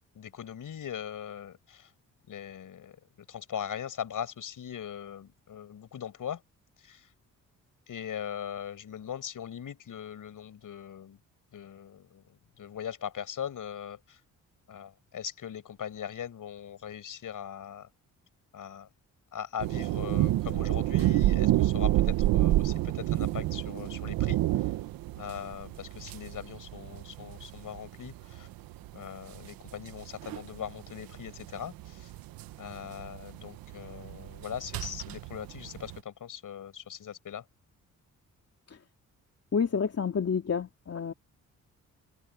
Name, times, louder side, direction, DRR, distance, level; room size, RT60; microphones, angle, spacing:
voice 1, 0.1-1.9 2.3-3.0 3.3-6.4 6.8-7.1 7.9-11.2 11.5-14.2 14.7-17.9 18.5-18.9 19.3-24.7 25.2-28.5 28.9-32.1 32.6-37.4, left 9 dB, 65° left, 7.7 m, -40 dB
sound 1, 19.6-36.0, right 15 dB, 90° right, 1.1 m, -29 dB
voice 2, 39.5-41.1, left 6 dB, 45° left, 3.0 m, -29 dB
supercardioid pair, 65°, 34 cm